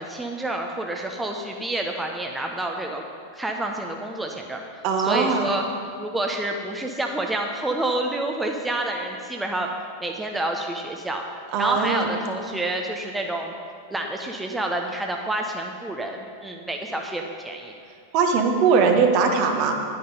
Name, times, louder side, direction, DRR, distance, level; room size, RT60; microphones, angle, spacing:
voice 1, 0.0-3.0 3.3-5.6 6.0-9.7 10.0-11.2 11.6-13.5 13.9-17.7, right 1 dB, 10° right, 2 dB, 0.9 m, -28 dB
voice 2, 4.8-5.4 11.5-12.1 18.1-19.7, right 5 dB, 45° right, 4 dB, 1.3 m, -20 dB
10.5 x 9.5 x 5.3 m, 2.2 s
figure-of-eight pair, 90°, 0 cm